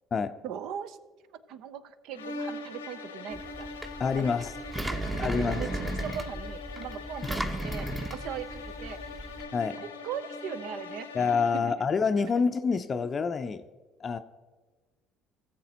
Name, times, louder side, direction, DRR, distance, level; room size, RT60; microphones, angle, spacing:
voice 1, 0.4-1.0 1.5-3.7 4.2-4.3 4.9-9.0 9.8-11.1 11.4-11.7, right 8 dB, 65° right, 0.6 m, -39 dB
sound 1, 2.1-11.8, left 3 dB, 90° left, 0.8 m, -41 dB
Engine, 3.3-9.4, right 1 dB, 10° right, 0.9 m, -35 dB
voice 2, 4.0-4.5 5.2-5.6 9.5-9.8 11.1-13.6 14.0-14.2, left 5 dB, 35° left, 0.5 m, -27 dB
18.0 x 7.5 x 2.9 m
hypercardioid pair, 60°, 0 cm